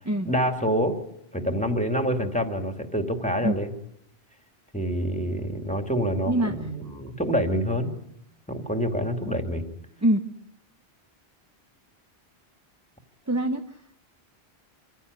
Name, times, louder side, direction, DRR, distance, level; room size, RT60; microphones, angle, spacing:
voice 1, 0.2-1.0 1.3-3.7 4.7-7.9 8.5-9.7, equal, 5° left, 5 dB, 2.5 m, -26 dB
voice 2, 6.3-6.6 6.8-7.0 10.0-10.2 13.3-13.8, right 1 dB, 15° right, 6 dB, 0.9 m, -24 dB
25.5 x 16.0 x 9.7 m, 0.76 s
omnidirectional pair, 1.1 m